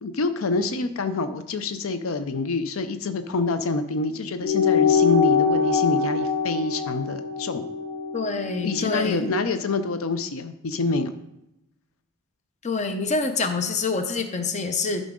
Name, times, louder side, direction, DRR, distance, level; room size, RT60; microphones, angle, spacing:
voice 1, 0.0-7.7 8.6-11.1, left 3 dB, 85° left, 10 dB, 0.6 m, -26 dB
sound 1, 4.4-9.2, left 6 dB, 65° left, 1.5 m, -23 dB
voice 2, 8.1-9.4 12.6-15.0, left 4 dB, 35° left, 7 dB, 0.7 m, -26 dB
11.0 x 5.1 x 3.7 m, 0.86 s
head